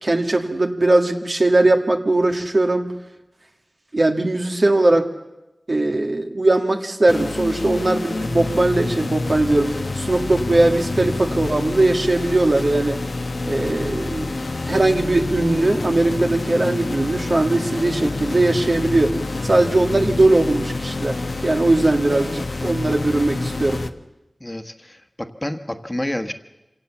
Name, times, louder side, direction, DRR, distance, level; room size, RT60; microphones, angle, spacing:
voice 1, 0.0-2.9 3.9-5.1 5.7-13.0 13.5-14.3 14.6-19.1 19.4-23.8, right 2 dB, 60° right, 4 dB, 1.9 m, -19 dB
sound 1, 7.1-23.9, left 3 dB, 75° left, 1.0 m, -27 dB
voice 2, 24.4-26.3, left 1 dB, 25° left, 7 dB, 1.3 m, -29 dB
25.5 x 17.5 x 7.3 m, 0.97 s
wide cardioid pair, 50°, 0 cm